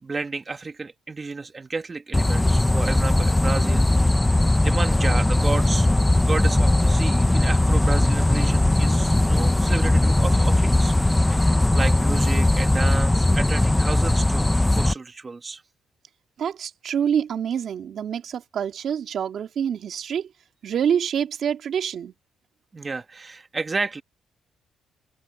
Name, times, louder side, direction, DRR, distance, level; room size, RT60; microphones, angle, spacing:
voice 1, 0.0-4.1 4.6-5.9 6.2-10.9 11.3-14.5 14.7-15.6 22.7-24.0, right 4 dB, 30° right, 1.5 m, -31 dB
sound 1, 2.1-14.9, left 1 dB, 10° left, 1.0 m, -19 dB
voice 2, 16.4-20.3 20.6-22.1, right 8 dB, 60° right, 2.1 m, -26 dB
cardioid pair, 90°, 0 cm